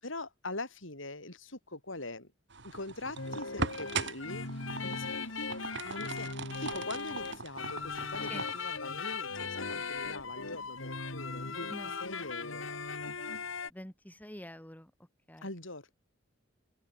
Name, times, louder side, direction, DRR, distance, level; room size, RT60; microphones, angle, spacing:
voice 1, 0.0-2.3 2.6-5.5 5.8-12.7 15.4-15.9, left 2 dB, 75° left, 7.5 m, -43 dB
sound 1, 2.5-8.6, right 4 dB, 65° right, 3.6 m, -40 dB
sound 2, 3.2-13.7, left 4 dB, 90° left, 4.0 m, -38 dB
voice 2, 13.7-14.9 15.3-15.4, equal, 10° left, 4.7 m, -46 dB
open air
head